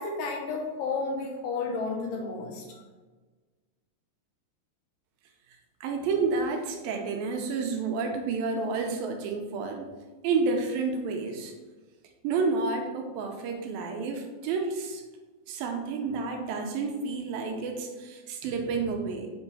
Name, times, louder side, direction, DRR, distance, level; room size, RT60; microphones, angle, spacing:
voice 1, 0.0-2.7, left 4 dB, 80° left, 1 dB, 2.0 m, -32 dB
voice 2, 5.8-9.9 10.2-11.5 12.2-15.0 15.5-19.3, right 4 dB, 85° right, 3 dB, 2.4 m, -30 dB
7.0 x 3.8 x 4.1 m, 1.3 s
omnidirectional pair, 4.4 m